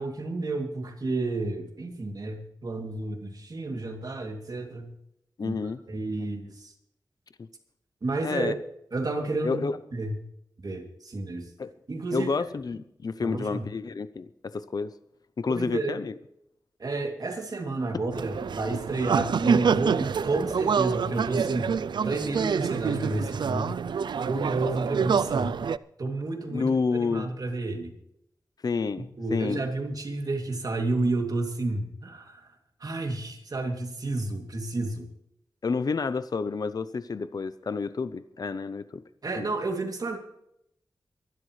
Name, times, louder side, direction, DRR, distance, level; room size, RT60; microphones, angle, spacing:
voice 1, 0.0-4.9 5.4-5.6 5.9-6.7 8.0-8.5 8.9-9.6 9.9-10.1 10.6-11.5 11.9-12.3 13.2-13.6 15.5-16.0 16.8-21.7 22.0-23.8 24.2-25.5 26.0-27.9 29.2-32.5 32.8-35.1 39.2-40.2, right 2 dB, 55° right, 3 dB, 2.8 m, -31 dB
voice 2, 5.4-5.8 6.2-6.3 8.2-8.5 9.4-9.8 11.6-11.7 12.1-14.9 15.4-16.1 26.5-27.3 28.6-29.6 35.6-39.0 39.4-39.5, left 4 dB, 60° left, 13 dB, 0.7 m, -29 dB
sound 1, 18.1-25.8, right 6 dB, 85° right, 0.4 m, -27 dB
23.5 x 12.0 x 3.3 m, 0.76 s
wide cardioid pair, 80°, 8 cm